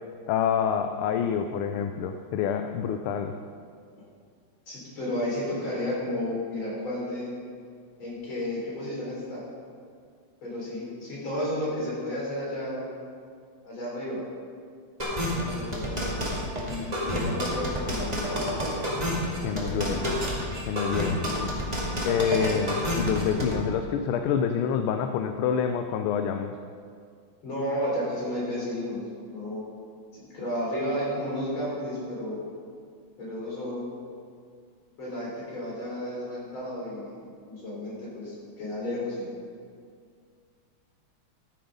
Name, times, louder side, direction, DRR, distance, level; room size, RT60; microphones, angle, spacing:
voice 1, 0.3-3.4 19.4-20.2 20.7-21.5 22.0-26.6, left 7 dB, 85° left, 7 dB, 1.5 m, -27 dB
voice 2, 4.7-7.3 8.0-9.4 10.4-12.9 13.6-14.2 15.3-16.2 16.6-18.9 19.4-20.2 21.0-21.3 27.4-29.0 29.3-29.6 30.1-32.4 33.2-34.0 35.0-39.3, left 1 dB, 70° left, -6 dB, 4.5 m, -32 dB
sound 1, 15.0-23.5, equal, 20° right, 2.2 m, -29 dB
13.5 x 7.5 x 5.3 m, 2.2 s
omnidirectional pair, 2.3 m